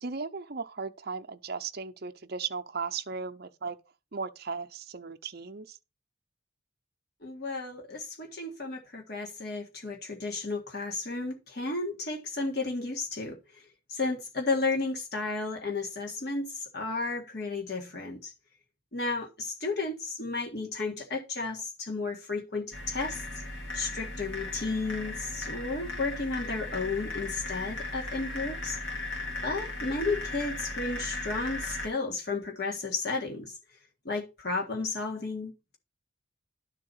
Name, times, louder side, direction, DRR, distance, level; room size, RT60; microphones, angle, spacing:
voice 1, 0.0-3.8 4.1-5.8, right 5 dB, 50° right, 0.6 m, -36 dB
voice 2, 7.2-13.6 13.9-18.3 18.9-23.2 23.7-28.8 29.4-33.5 34.0-35.8, left 3 dB, 50° left, 1.7 m, -33 dB
sound 1, 22.7-31.9, left 2 dB, 65° left, 2.6 m, -37 dB
11.5 x 4.1 x 5.6 m
head